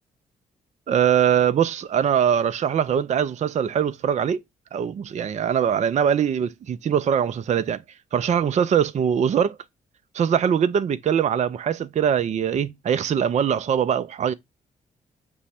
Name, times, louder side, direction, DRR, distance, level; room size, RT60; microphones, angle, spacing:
voice 1, 0.9-4.4 4.7-7.8 8.1-9.6 10.1-14.3, right 8 dB, 40° right, 0.4 m, -22 dB
6.1 x 2.0 x 4.2 m
hypercardioid pair, 40°, 18 cm